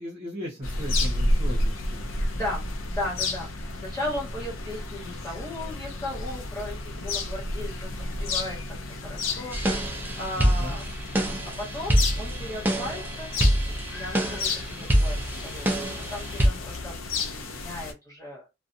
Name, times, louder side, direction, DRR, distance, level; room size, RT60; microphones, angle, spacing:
voice 1, 0.0-2.0 10.3-10.8, equal, 30° right, -5 dB, 1.0 m, -37 dB
sound 1, 0.6-17.9, left 2 dB, 80° left, 0.5 m, -31 dB
voice 2, 2.3-9.6 10.2-10.9 11.6-13.3 13.7-15.2 15.4-18.4, left 1 dB, 15° left, -3 dB, 1.3 m, -36 dB
sound 2, 9.5-16.5, equal, 10° right, 0.4 m, -26 dB
2.5 x 2.2 x 2.6 m, 0.24 s
head